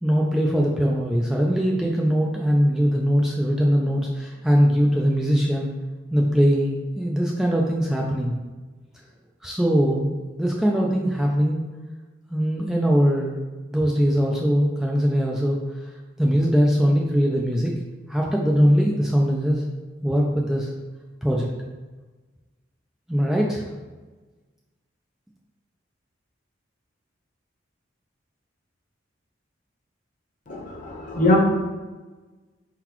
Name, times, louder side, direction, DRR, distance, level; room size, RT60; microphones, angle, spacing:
voice 1, 0.0-5.7 6.1-8.4 9.4-11.6 12.3-13.4 13.7-17.8 18.1-19.6 20.0-20.7 21.2-21.5 23.1-23.7, equal, 5° right, -2 dB, 0.3 m, -21 dB
voice 2, 30.5-31.4, left 1 dB, 40° left, -1 dB, 0.9 m, -22 dB
4.5 x 3.9 x 3.0 m, 1.3 s
head